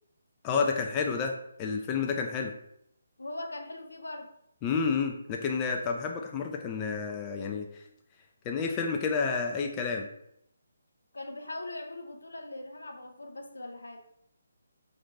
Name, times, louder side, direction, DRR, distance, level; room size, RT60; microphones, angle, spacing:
voice 1, 0.4-1.3 1.6-2.5 4.6-7.8 8.4-10.1, left 5 dB, 20° left, 2 dB, 0.3 m, -30 dB
voice 2, 3.2-4.3 11.1-14.0, left 2 dB, 75° left, 4 dB, 0.6 m, -40 dB
4.0 x 2.5 x 3.1 m, 0.74 s
figure-of-eight pair, 145°, 0 cm